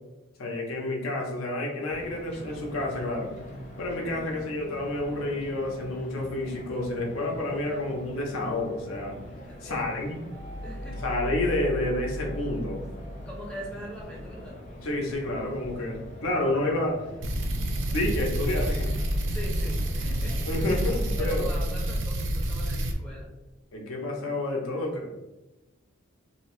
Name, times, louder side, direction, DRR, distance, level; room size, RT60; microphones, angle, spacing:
voice 1, 0.4-3.3 3.8-9.1 9.6-10.2 10.9-12.8 14.8-17.0 17.5-18.9 20.5-21.4 23.7-25.3, left 1 dB, 80° left, 0 dB, 0.6 m, -29 dB
sound 1, 1.9-21.6, left 1 dB, 35° left, 0.7 m, -44 dB
voice 2, 9.5-10.2 10.6-11.0 13.3-14.6 19.3-20.5 21.2-23.3, left 1 dB, 5° left, -4 dB, 0.4 m, -41 dB
sound 2, 10.3-14.0, left 1 dB, 85° right, 0.8 m, -37 dB
sound 3, 17.2-22.9, right 1 dB, 60° right, 0.4 m, -28 dB
2.7 x 2.0 x 2.9 m, 1.0 s
head